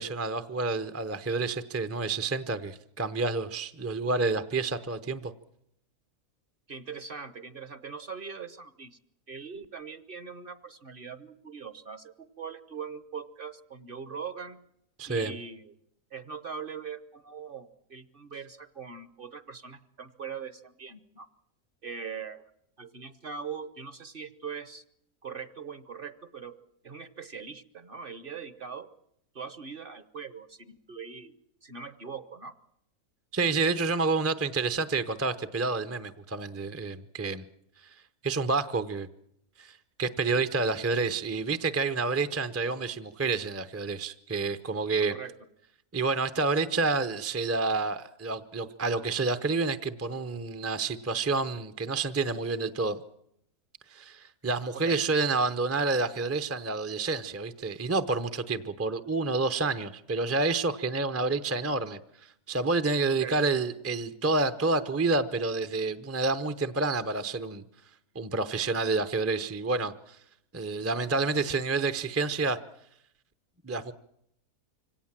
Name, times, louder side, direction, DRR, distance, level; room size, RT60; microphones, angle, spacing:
voice 1, 0.0-5.3 15.0-15.3 33.3-37.4 38.2-39.1 39.6-45.1 45.9-53.0 53.9-62.0 62.5-67.6 68.1-70.2 70.5-72.6 73.6-73.9, right 3 dB, 15° right, 11 dB, 0.5 m, -29 dB
voice 2, 6.7-9.0 9.3-14.6 15.1-15.7 16.1-21.3 21.8-22.5 22.8-24.8 25.2-26.6 26.8-28.9 29.3-31.3 31.6-32.5 45.1-45.3 54.7-55.0 63.1-63.4, right 6 dB, 40° right, 14 dB, 1.0 m, -41 dB
25.0 x 17.5 x 7.4 m, 0.75 s
omnidirectional pair, 1.6 m